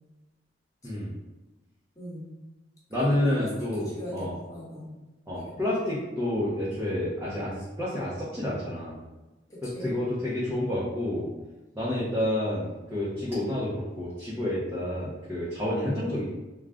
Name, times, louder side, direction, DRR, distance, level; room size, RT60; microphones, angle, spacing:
voice 1, 1.9-2.4 2.9-4.9 5.3-5.7 9.5-9.9, left 1 dB, 20° left, -7 dB, 1.1 m, -41 dB
voice 2, 2.9-4.3 5.3-9.0 9.6-11.3 11.8-16.2, left 1 dB, 15° right, -8 dB, 0.7 m, -29 dB
3.5 x 2.3 x 3.7 m, 1.1 s
head